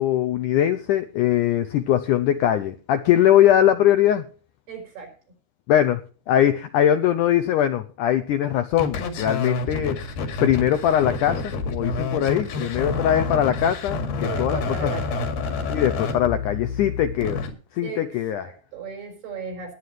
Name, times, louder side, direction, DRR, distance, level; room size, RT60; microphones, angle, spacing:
voice 1, 0.0-4.2 5.7-6.0 6.3-10.0 10.4-14.9 15.7-17.5 17.7-18.5, left 11 dB, 90° left, 10 dB, 1.8 m, -21 dB
voice 2, 4.7-5.1 12.6-13.1 14.2-15.4 17.8-19.7, right 5 dB, 75° right, 2 dB, 6.9 m, -36 dB
sound 1, 8.7-17.5, left 3 dB, 75° left, 3.9 m, -28 dB
20.0 x 9.4 x 3.2 m, 0.39 s
omnidirectional pair, 4.5 m